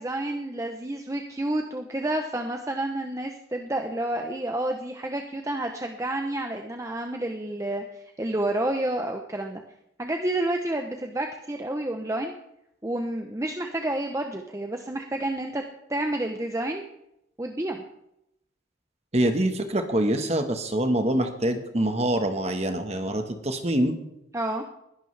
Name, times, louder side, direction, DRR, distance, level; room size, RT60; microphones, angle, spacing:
voice 1, 0.0-9.6 10.0-12.3 12.8-15.6 15.9-16.8 17.4-17.8 24.3-24.6, right 1 dB, 15° right, 4 dB, 0.7 m, -29 dB
voice 2, 19.1-24.0, right 1 dB, 35° right, 7 dB, 1.3 m, -25 dB
20.5 x 11.0 x 3.3 m, 0.82 s
head